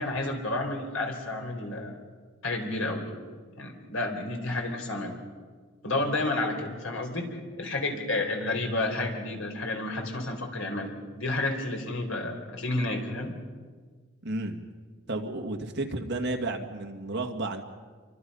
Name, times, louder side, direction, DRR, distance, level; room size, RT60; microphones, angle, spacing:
voice 1, 0.0-2.0 2.4-3.1 3.6-5.2 5.8-13.3, left 2 dB, 90° left, 3 dB, 4.3 m, -31 dB
voice 2, 14.2-14.6 15.1-17.6, right 2 dB, 55° right, 4 dB, 2.2 m, -32 dB
28.5 x 24.0 x 5.6 m, 1.5 s
head